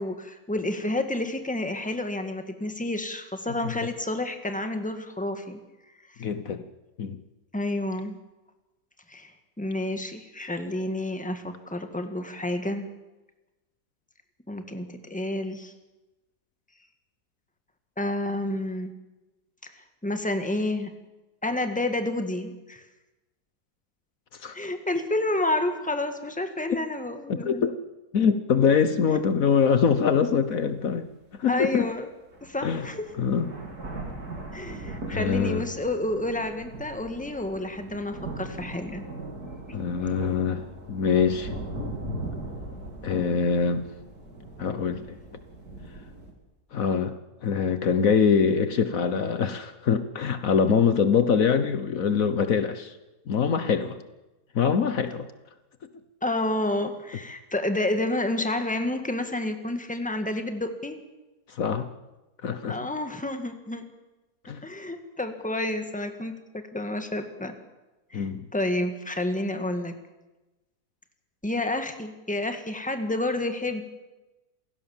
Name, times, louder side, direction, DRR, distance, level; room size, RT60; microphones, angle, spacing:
voice 1, 0.0-5.6 7.5-8.2 9.1-9.3 9.6-12.9 14.5-15.7 18.0-18.9 19.6-20.9 21.4-22.8 24.5-27.6 29.1-29.2 31.5-32.1 32.4-33.1 34.5-39.1 56.2-61.0 62.7-63.9 64.6-67.5 68.1-69.9 71.4-73.8, left 1 dB, 5° left, 6 dB, 1.8 m, -30 dB
voice 2, 6.2-6.7 7.0-7.2 24.3-24.6 27.5-27.7 28.1-31.1 31.4-31.9 32.6-32.9 33.2-33.5 35.1-35.7 39.7-40.6 40.9-41.5 43.0-43.9 44.6-45.2 46.7-53.0 53.3-54.0 54.5-55.3 61.5-61.9 62.4-62.8 64.5-64.6 68.1-68.5, left 6 dB, 65° left, 10 dB, 1.4 m, -24 dB
sound 1, 29.8-29.9 30.5-30.6 31.9-32.0 32.3-46.3, right 2 dB, 80° right, 3.7 m, -39 dB
28.0 x 16.5 x 7.3 m, 1.1 s
omnidirectional pair, 1.6 m